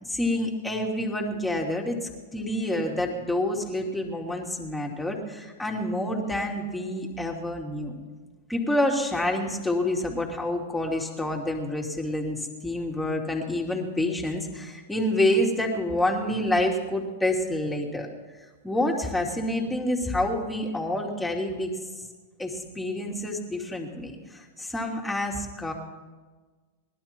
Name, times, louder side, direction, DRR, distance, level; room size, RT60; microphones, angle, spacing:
voice 1, 0.0-7.9 8.5-18.1 18.6-22.1 22.4-25.7, left 1 dB, 5° left, 0 dB, 2.8 m, -28 dB
19.5 x 12.0 x 4.5 m, 1.3 s
hypercardioid pair, 110°, 0 cm